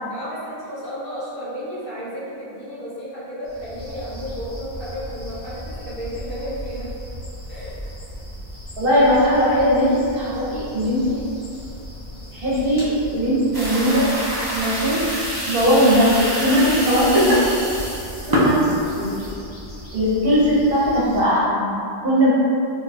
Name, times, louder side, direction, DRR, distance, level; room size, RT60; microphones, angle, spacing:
voice 1, 0.1-6.9 7.5-7.8, equal, 60° left, -9 dB, 1.1 m, -33 dB
sound 1, 3.4-21.2, equal, 35° left, 0.9 m, -37 dB
voice 2, 8.8-11.2 12.3-14.1 14.5-15.0 15.5-17.6 18.3-19.3 19.9-21.7 22.0-22.3, equal, 65° right, -7 dB, 1.0 m, -19 dB
sound 2, 13.5-19.3, equal, 35° right, 0.4 m, -24 dB
2.8 x 2.2 x 4.1 m, 2.7 s
omnidirectional pair, 1.0 m